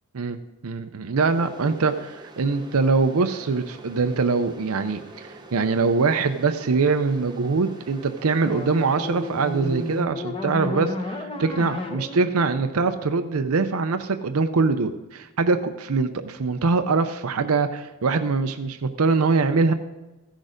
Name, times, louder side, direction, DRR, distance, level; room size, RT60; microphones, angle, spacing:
voice 1, 0.1-19.7, right 4 dB, 85° right, 9 dB, 0.6 m, -23 dB
sound 1, 1.2-10.0, right 2 dB, 20° right, 0.8 m, -45 dB
sound 2, 8.4-13.6, left 1 dB, 25° left, 1.0 m, -33 dB
15.0 x 6.4 x 5.1 m, 1.1 s
head